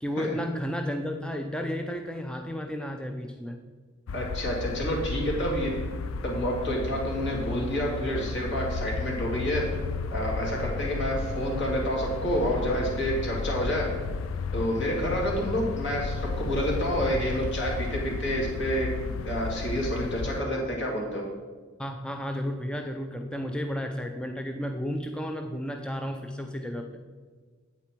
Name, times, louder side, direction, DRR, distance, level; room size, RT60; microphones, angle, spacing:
voice 1, 0.0-3.6 21.8-26.9, equal, 5° left, 3 dB, 0.4 m, -32 dB
sound 1, 4.1-20.4, left 4 dB, 80° left, 0.4 m, -33 dB
voice 2, 4.1-5.7 6.2-9.6 10.1-13.9 14.5-21.2, equal, 60° left, -2 dB, 2.6 m, -29 dB
8.5 x 8.4 x 4.6 m, 1.5 s
head